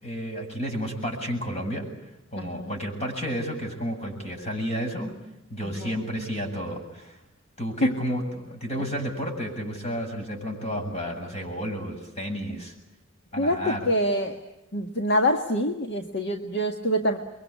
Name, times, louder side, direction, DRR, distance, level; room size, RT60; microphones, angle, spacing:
voice 1, 0.0-1.8 2.3-5.1 5.5-7.2 7.6-12.7 13.3-13.9, equal, 35° left, 3 dB, 7.6 m, -31 dB
voice 2, 2.4-2.7 5.6-6.0 7.8-7.9 8.7-8.8 12.5-12.6 13.4-14.4 14.7-17.2, equal, 60° left, 4 dB, 1.7 m, -26 dB
29.0 x 23.5 x 8.5 m, 0.91 s
head